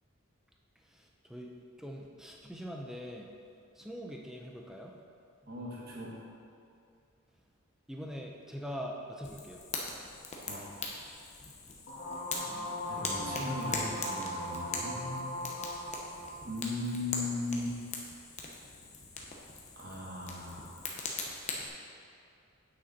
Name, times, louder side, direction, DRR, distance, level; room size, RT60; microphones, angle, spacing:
voice 1, 1.8-3.3 3.8-4.9 7.9-9.6 12.5-13.1 15.5-15.6, equal, ahead, 0 dB, 0.6 m, -43 dB
voice 2, 5.4-6.2 10.5-10.6 12.9-15.4 16.4-17.8 19.7-20.7, left 2 dB, 45° right, -4 dB, 1.6 m, -38 dB
Fire, 9.2-21.7, left 3 dB, 30° left, 0.9 m, -41 dB
sound 1, 11.9-16.4, left 1 dB, 75° left, 1.9 m, -38 dB
8.7 x 6.2 x 4.2 m, 2.5 s
head